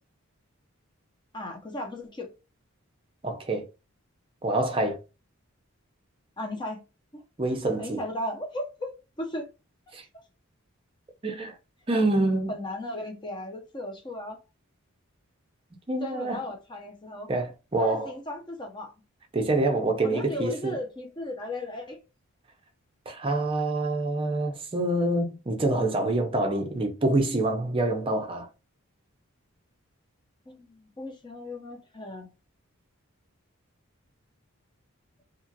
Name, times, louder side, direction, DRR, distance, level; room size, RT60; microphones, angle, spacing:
voice 1, 1.3-2.3 6.4-6.8 7.1-7.2 7.8-8.9 9.2-9.5 12.5-14.4 16.0-17.3 17.8-18.9 20.0-22.0 30.5-32.3, left 1 dB, 20° left, 0.7 m, -36 dB
voice 2, 3.2-3.7 4.4-5.0 7.4-8.0 9.9-10.0 11.2-11.6 11.9-12.5 15.9-16.4 17.3-18.1 19.3-20.8 23.1-28.5, right 2 dB, 25° right, 0.5 m, -26 dB
2.8 x 2.4 x 2.7 m
head